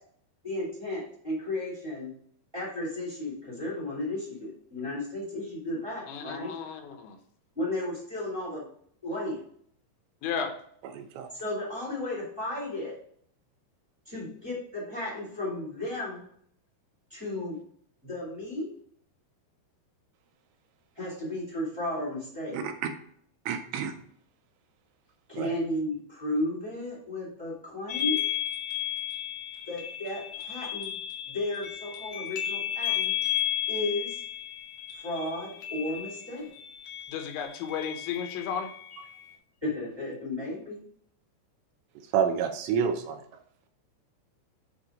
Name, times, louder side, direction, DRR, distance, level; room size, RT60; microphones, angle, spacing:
voice 1, 0.4-2.1 2.5-6.6 7.5-8.6 9.0-9.4 11.4-12.9 14.0-16.2 17.1-17.6 18.0-18.7 20.9-22.6 25.3-28.2 29.7-30.9 31.2-33.1 33.7-34.2 34.9-36.5 39.6-40.8, left 1 dB, 10° right, 1.4 m, -34 dB
voice 2, 6.1-7.2 10.2-10.5 37.1-38.7, left 7 dB, 80° left, 3.1 m, -33 dB
voice 3, 10.9-11.3 22.5-22.7 23.5-23.9 25.3-25.5 42.1-43.2, right 7 dB, 80° right, 2.9 m, -28 dB
sound 1, 27.9-39.3, left 11 dB, 65° left, 1.9 m, -34 dB
8.3 x 3.5 x 5.0 m
omnidirectional pair, 5.2 m